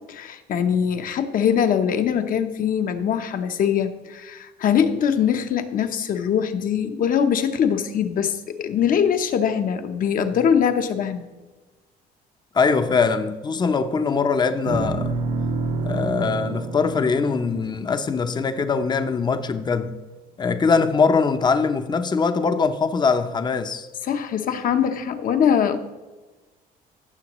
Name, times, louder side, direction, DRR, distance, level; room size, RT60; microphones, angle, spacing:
voice 1, 0.1-11.3 24.0-25.8, left 8 dB, 55° left, 0.9 m, -22 dB
voice 2, 12.5-15.1 15.8-19.9 20.4-23.9, left 5 dB, 25° left, 0.7 m, -22 dB
sound 1, 14.7-19.1, right 3 dB, 85° right, 1.6 m, -29 dB
16.0 x 7.0 x 3.1 m
cardioid pair, 110°, 17 cm